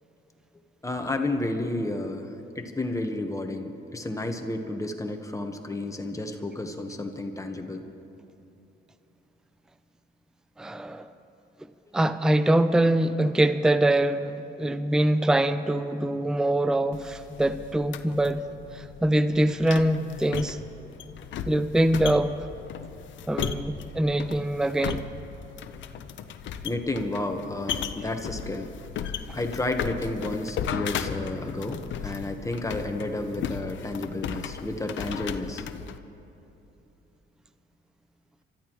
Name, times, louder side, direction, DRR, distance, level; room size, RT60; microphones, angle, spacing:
voice 1, 0.8-7.9 26.6-28.7 29.3-35.6, left 2 dB, 15° left, 5 dB, 1.2 m, -31 dB
voice 2, 10.6-11.1 11.9-18.4 18.7-20.6 21.5-22.3 23.3-25.0, right 1 dB, 5° right, 11 dB, 0.5 m, -24 dB
sound 1, 16.9-36.0, left 8 dB, 70° left, 0.8 m, -36 dB
28.5 x 13.5 x 3.1 m, 2.9 s
cardioid pair, 90°, 20 cm